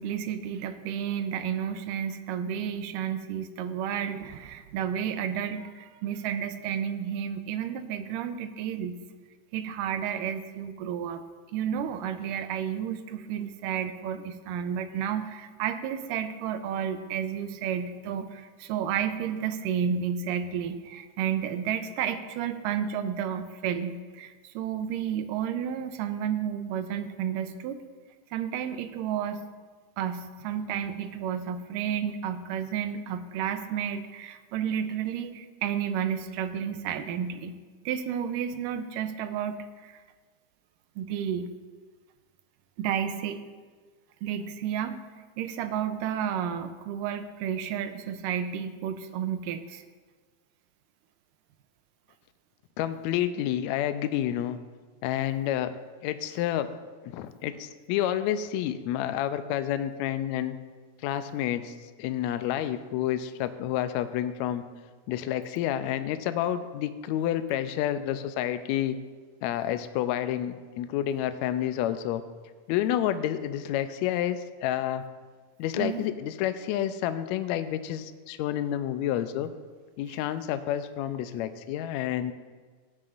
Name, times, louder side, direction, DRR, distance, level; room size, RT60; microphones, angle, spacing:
voice 1, 0.0-9.0 9.5-11.2 11.5-27.8 28.3-29.4 30.0-37.5 37.8-40.0 41.0-41.5 42.8-43.4 44.2-45.0 45.4-49.8 75.8-76.1, right 8 dB, 90° right, 9 dB, 2.3 m, -31 dB
voice 2, 52.8-54.6 55.0-55.7 56.0-56.7 57.0-60.6 61.0-64.6 65.1-69.0 69.4-72.2 72.7-75.0 75.6-79.5 80.0-82.3, left 11 dB, 85° left, 10 dB, 1.6 m, -29 dB
16.5 x 10.5 x 2.5 m, 1.4 s
omnidirectional pair, 3.7 m